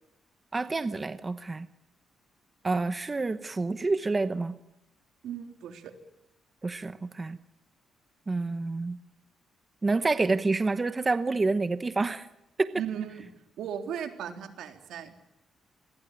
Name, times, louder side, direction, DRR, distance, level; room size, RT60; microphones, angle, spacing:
voice 1, 0.5-1.7 2.6-4.6 6.6-7.4 8.3-9.0 9.8-12.3 12.6-12.7, right 3 dB, 20° right, 12 dB, 1.0 m, -28 dB
voice 2, 5.2-5.9 12.7-13.3 13.6-15.1, right 8 dB, 80° right, 6 dB, 3.7 m, -36 dB
27.5 x 21.5 x 9.1 m, 0.88 s
cardioid pair, 150°, 0 cm